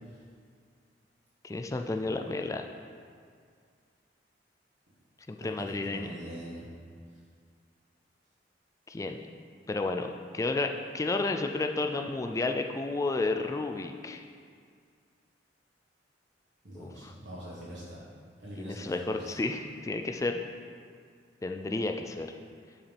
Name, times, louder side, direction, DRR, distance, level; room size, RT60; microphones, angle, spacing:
voice 1, 1.4-2.6 5.3-6.1 8.9-9.2 9.7-14.2 16.7-17.1 18.6-20.4 21.4-22.3, left 3 dB, 15° left, 4 dB, 0.3 m, -32 dB
voice 2, 5.4-6.7 16.6-18.0 18.4-19.4, equal, 70° right, -9 dB, 1.5 m, -43 dB
10.5 x 4.8 x 3.4 m, 2.1 s
head